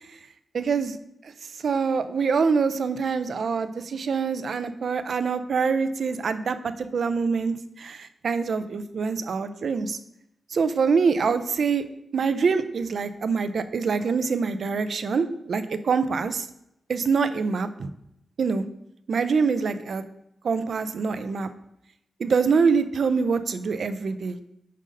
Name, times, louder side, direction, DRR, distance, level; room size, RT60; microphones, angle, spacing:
voice 1, 0.5-1.0 1.6-10.0 10.5-11.8 12.1-16.5 16.9-17.9 18.4-18.6 19.1-20.0 20.4-21.5 22.2-24.4, right 5 dB, 65° right, 11 dB, 0.4 m, -25 dB
5.4 x 5.1 x 3.8 m, 0.80 s
wide cardioid pair, 115°, 0 cm